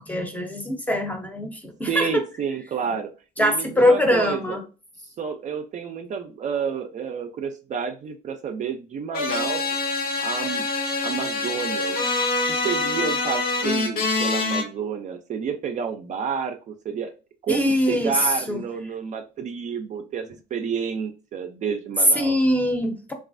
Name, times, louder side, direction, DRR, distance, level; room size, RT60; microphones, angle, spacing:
voice 1, 0.1-2.2 3.4-4.6 17.5-18.2 18.5-18.6 22.1-23.1, left 1 dB, 10° left, 4 dB, 0.6 m, -22 dB
voice 2, 1.9-3.1 3.4-4.6 5.2-9.6 10.2-10.6 11.0-12.0 12.6-17.1 17.4-22.4, right 6 dB, 45° right, 6 dB, 0.4 m, -30 dB
sound 1, 9.1-14.6, left 3 dB, 60° left, 0.8 m, -25 dB
3.1 x 2.4 x 2.5 m, 0.33 s
cardioid pair, 110°, 17 cm